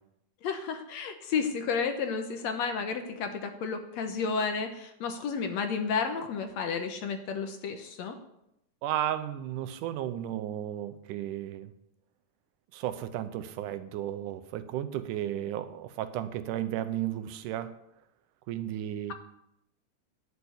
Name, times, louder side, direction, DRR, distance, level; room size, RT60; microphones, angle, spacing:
voice 1, 0.4-8.2, left 5 dB, 65° left, 6 dB, 2.1 m, -32 dB
voice 2, 8.8-11.7 12.7-17.8 18.5-19.1, right 11 dB, 85° right, 11 dB, 2.3 m, -34 dB
11.5 x 7.0 x 8.1 m, 0.81 s
omnidirectional pair, 3.6 m